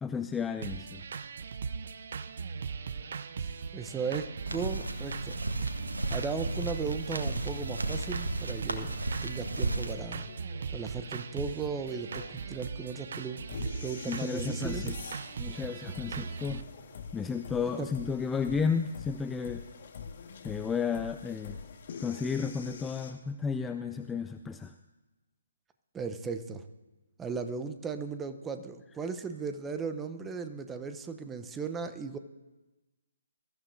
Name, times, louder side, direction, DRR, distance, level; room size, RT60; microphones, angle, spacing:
voice 1, 0.0-1.0 14.1-15.0 15.4-16.6 17.1-19.6 20.4-21.6 22.0-24.7, left 6 dB, 10° left, 8 dB, 0.4 m, -33 dB
sound 1, 0.6-16.6, right 5 dB, 55° right, 0.6 m, -39 dB
voice 2, 3.7-5.4 6.1-10.3 10.7-13.4 13.8-14.8 17.8-17.9 25.9-26.6 27.2-32.2, right 5 dB, 10° right, 9 dB, 0.7 m, -36 dB
sound 2, 4.4-9.9, right 2 dB, 80° right, 1.5 m, -34 dB
sound 3, 8.0-23.1, left 6 dB, 45° left, 1.7 m, -46 dB
23.0 x 14.0 x 2.7 m, 1.1 s
figure-of-eight pair, 140°, 0 cm